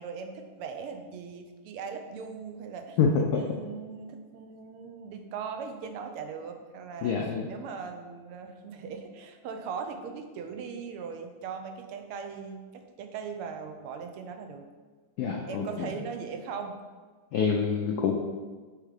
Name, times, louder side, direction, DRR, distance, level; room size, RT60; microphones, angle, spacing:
voice 1, 0.0-3.0 3.3-7.2 7.5-14.6 15.4-16.8, right 6 dB, 90° right, 5 dB, 1.6 m, -39 dB
voice 2, 3.0-3.4 7.0-7.4 15.2-15.9 17.3-18.1, left 5 dB, 85° left, 1 dB, 0.8 m, -26 dB
6.7 x 3.6 x 4.8 m, 1.4 s
omnidirectional pair, 2.3 m